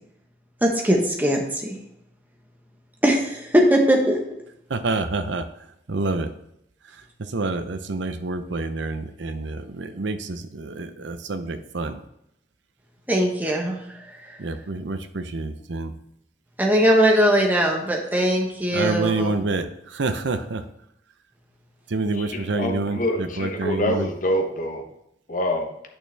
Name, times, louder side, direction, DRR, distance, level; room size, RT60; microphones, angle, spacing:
voice 1, 0.6-1.8 3.0-4.2 13.1-13.8 16.6-19.3, equal, 10° right, 0 dB, 1.1 m, -20 dB
voice 2, 4.7-5.4 5.9-6.3 7.3-12.0 14.4-15.9 18.7-20.6 21.9-24.1, right 3 dB, 80° right, 10 dB, 0.7 m, -27 dB
voice 3, 22.1-24.8 25.3-25.7, left 1 dB, 45° left, 3 dB, 1.0 m, -26 dB
8.9 x 6.4 x 3.4 m, 0.77 s
head